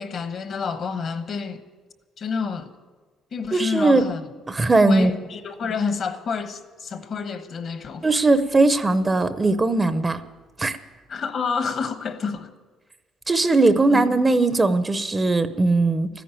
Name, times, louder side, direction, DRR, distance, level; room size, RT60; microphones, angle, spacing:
voice 1, 0.0-1.6 2.2-2.7 3.3-4.3 4.8-8.3 11.1-12.5 13.9-14.1, left 5 dB, 45° left, 1.1 m, -29 dB
voice 2, 3.5-4.1 4.5-5.1 8.0-10.2 10.6-10.8 13.3-16.1, right 2 dB, 20° right, 0.6 m, -19 dB
14.0 x 10.0 x 8.9 m
cardioid pair, 120°, 0 cm